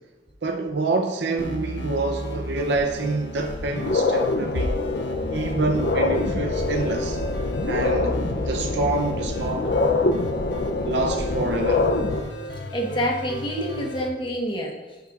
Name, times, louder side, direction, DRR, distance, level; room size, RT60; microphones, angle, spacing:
voice 1, 0.4-4.8 5.3-7.2 7.7-9.7 10.8-11.9, right 3 dB, 70° right, 0.6 m, -27 dB
sound 1, 1.4-14.1, equal, 80° left, 1.1 m, -35 dB
sound 2, 2.8-2.9 3.4-12.2, left 2 dB, 55° left, 0.5 m, -25 dB
voice 2, 12.7-14.8, equal, 25° left, 1.2 m, -27 dB
9.5 x 9.0 x 2.4 m
head